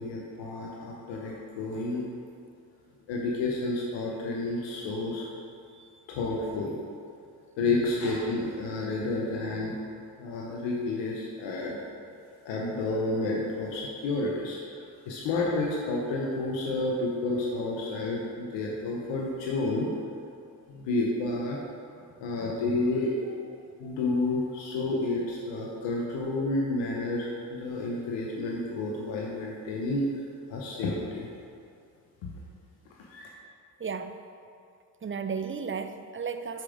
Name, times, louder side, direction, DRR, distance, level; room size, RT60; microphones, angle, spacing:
voice 1, 0.0-2.1 3.1-5.3 6.1-6.7 7.6-9.8 10.2-11.8 12.4-14.6 15.1-19.9 20.7-21.6 22.2-23.3 23.8-30.1 30.5-31.3 32.2-32.3 33.1-33.3, left 2 dB, 90° left, -3 dB, 0.9 m, -30 dB
voice 2, 5.7-6.0 33.8-34.2 35.0-36.6, right 5 dB, 30° right, 8 dB, 0.6 m, -34 dB
7.4 x 5.2 x 4.9 m, 2.4 s
supercardioid pair, 40°, 43 cm